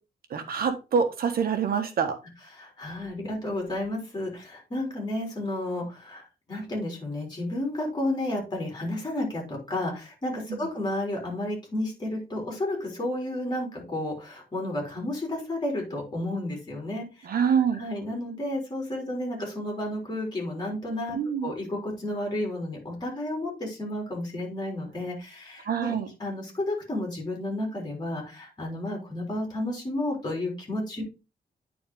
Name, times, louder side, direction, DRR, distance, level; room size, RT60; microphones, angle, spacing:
voice 1, 0.3-2.1 10.5-10.7 17.2-17.8 21.1-21.5 25.6-26.1, right 7 dB, 65° right, 7 dB, 1.4 m, -26 dB
voice 2, 2.5-17.3 17.8-31.0, left 1 dB, 25° left, 0 dB, 3.6 m, -32 dB
9.4 x 4.2 x 3.7 m, 0.29 s
wide cardioid pair, 140°, 16 cm